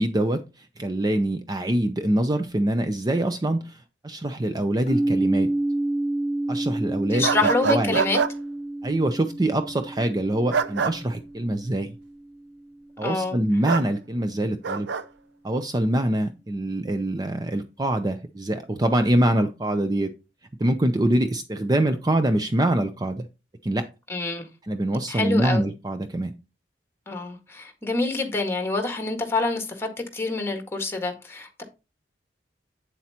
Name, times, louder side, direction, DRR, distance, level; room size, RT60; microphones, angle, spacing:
voice 1, 0.0-5.5 6.5-7.3 7.7-8.0 8.8-11.9 13.0-14.9 15.4-20.1 20.6-23.3 23.6-23.9 24.6-26.3, right 1 dB, 20° right, 0.6 m, -24 dB
sound 1, 4.9-12.7, right 1 dB, 40° left, 1.3 m, -29 dB
voice 2, 7.1-8.2 13.0-13.4 24.1-24.5 25.1-25.6 27.1-31.6, left 3 dB, 15° left, 1.8 m, -26 dB
sound 2, 7.2-8.3 10.5-10.9 13.6-13.9 14.6-15.0, right 5 dB, 75° right, 0.6 m, -24 dB
8.4 x 7.5 x 2.9 m
head